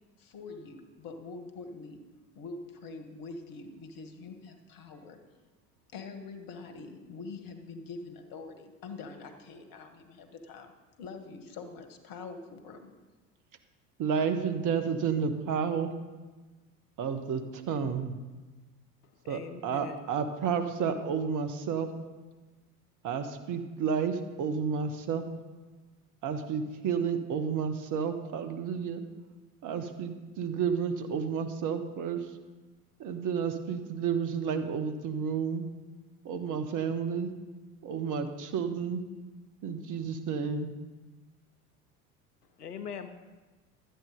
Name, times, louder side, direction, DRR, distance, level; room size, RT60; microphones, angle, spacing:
voice 1, 0.2-2.0 2.3-5.2 5.9-10.7 11.0-12.9, left 4 dB, 50° left, 7 dB, 1.8 m, -44 dB
voice 2, 14.0-15.9 17.0-18.1 19.3-21.9 23.0-25.2 26.2-29.0 29.6-32.2 33.0-35.7 36.2-37.3 37.8-39.0 39.6-40.7, right 6 dB, 45° right, 7 dB, 1.3 m, -31 dB
voice 3, 19.2-20.0 42.6-43.1, left 7 dB, 90° left, 9 dB, 0.9 m, -41 dB
12.5 x 9.1 x 5.2 m, 1.2 s
hypercardioid pair, 75°, 45 cm